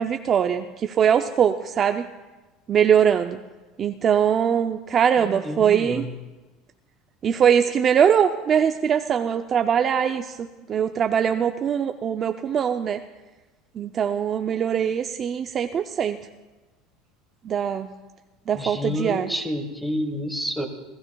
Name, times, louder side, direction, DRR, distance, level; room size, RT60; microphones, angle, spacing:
voice 1, 0.0-2.0 2.7-3.4 3.8-6.1 7.2-13.0 13.8-16.2 17.4-17.9 18.5-19.3, right 8 dB, 30° right, 7 dB, 0.4 m, -22 dB
voice 2, 5.2-6.1 18.5-20.7, equal, ahead, 7 dB, 1.3 m, -29 dB
28.5 x 15.5 x 2.3 m, 1.2 s
cardioid pair, 150°, 0 cm